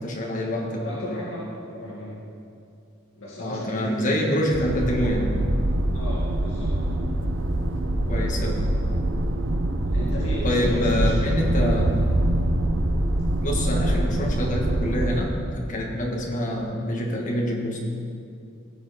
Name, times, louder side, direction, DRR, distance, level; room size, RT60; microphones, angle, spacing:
voice 1, 0.0-1.2 3.4-5.3 8.1-8.6 10.4-11.9 13.4-17.8, left 1 dB, 40° left, -1 dB, 1.8 m, -26 dB
voice 2, 0.8-2.2 3.2-4.3 5.9-6.8 9.9-11.6, left 1 dB, 80° left, -7 dB, 2.0 m, -34 dB
sound 1, 4.5-15.4, right 1 dB, 75° right, 0.8 m, -24 dB
17.5 x 7.0 x 4.3 m, 2.5 s
head